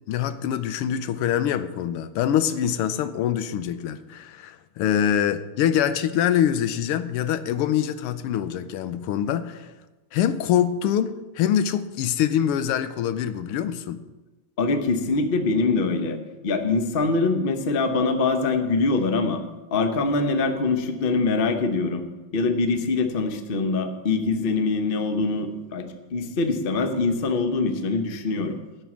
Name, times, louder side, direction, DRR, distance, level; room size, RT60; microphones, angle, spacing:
voice 1, 0.1-9.7 10.1-14.0, left 10 dB, 90° left, 12 dB, 1.6 m, -24 dB
voice 2, 14.6-16.2 16.4-19.4 19.7-22.1 22.3-28.6, left 3 dB, 65° left, 7 dB, 0.5 m, -23 dB
11.0 x 5.8 x 8.5 m, 1.1 s
omnidirectional pair, 2.4 m